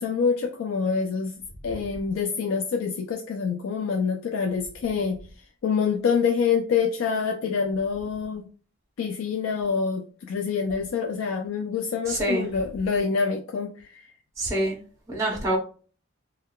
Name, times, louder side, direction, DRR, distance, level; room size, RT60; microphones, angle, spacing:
voice 1, 0.0-5.2 5.6-8.5 9.0-14.1, left 5 dB, 85° left, 0.3 m, -26 dB
voice 2, 12.0-12.5 14.4-14.8 15.1-15.6, right 1 dB, 15° right, 0.6 m, -26 dB
3.5 x 2.2 x 2.2 m
head